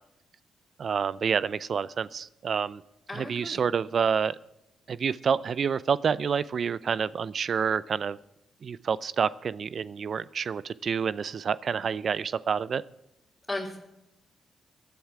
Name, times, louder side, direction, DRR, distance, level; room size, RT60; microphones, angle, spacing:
voice 1, 0.8-2.8 3.1-4.4 4.9-8.2 8.6-12.8, right 6 dB, 60° right, 19 dB, 0.4 m, -28 dB
voice 2, 3.1-3.6 13.5-13.8, left 2 dB, 15° left, -4 dB, 3.2 m, -35 dB
17.0 x 11.0 x 4.8 m, 0.87 s
supercardioid pair, 50°, 0 cm